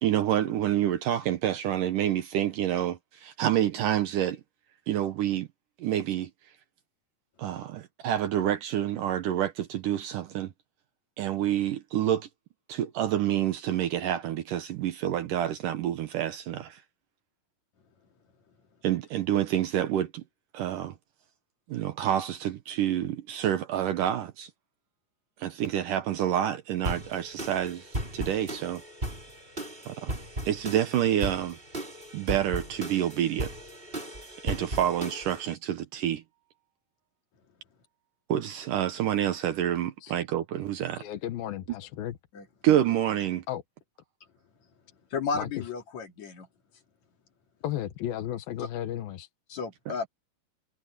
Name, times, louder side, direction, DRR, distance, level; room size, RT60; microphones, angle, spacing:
voice 1, 0.0-4.4 4.9-5.5 5.8-6.3 7.4-10.5 11.2-12.3 12.7-16.8 18.8-20.2 20.5-21.0 21.7-24.5 25.4-28.8 29.9-30.1 30.5-31.6 32.1-33.5 34.4-36.2 38.3-41.0 42.6-43.4, right 11 dB, 70° right, 2.2 m, -28 dB
sound 1, 26.8-35.5, right 1 dB, 15° right, 4.1 m, -37 dB
voice 2, 41.0-42.2 43.5-43.6 45.3-45.5 47.6-49.3, left 12 dB, 75° left, 2.9 m, -34 dB
voice 3, 45.1-46.5 48.6-48.7 49.5-50.1, left 5 dB, 50° left, 3.1 m, -33 dB
omnidirectional pair, 4.5 m